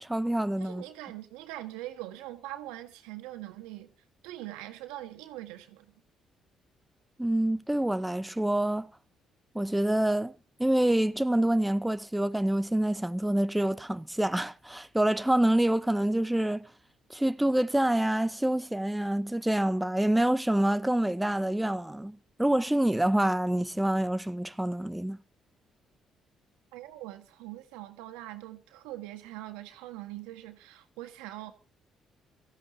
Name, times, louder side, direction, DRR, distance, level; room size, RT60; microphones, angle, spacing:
voice 1, 0.0-0.8 7.2-8.9 9.5-10.3 10.6-16.7 17.1-25.2, right 1 dB, 10° right, 0.6 m, -27 dB
voice 2, 0.6-3.9 4.2-5.9 26.7-31.5, right 15 dB, 90° right, 1.6 m, -42 dB
24.5 x 14.5 x 2.7 m
supercardioid pair, 60°, 0 cm